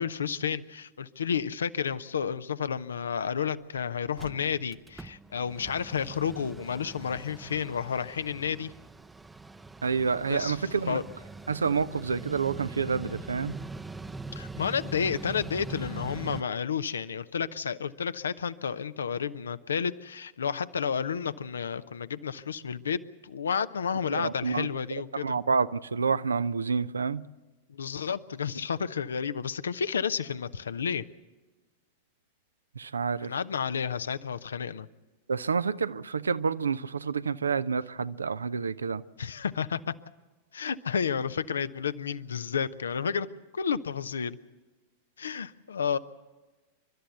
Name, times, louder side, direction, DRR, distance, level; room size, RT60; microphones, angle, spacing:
voice 1, 0.0-8.7 10.3-10.6 10.9-11.0 14.3-25.4 27.7-31.0 33.2-34.9 39.2-39.8 40.5-43.3 43.5-44.4 45.2-46.0, left 7 dB, 70° left, 0.7 m, -31 dB
Mechanical fan, 3.4-3.5 3.8-3.9 4.1-16.4, right 3 dB, 10° right, 0.7 m, -43 dB
voice 2, 9.8-11.0 11.5-13.6 24.1-24.7 25.1-27.2 32.8-33.3 35.3-39.0, right 5 dB, 75° right, 0.6 m, -28 dB
29.5 x 12.5 x 8.0 m
figure-of-eight pair, 90°, 0 cm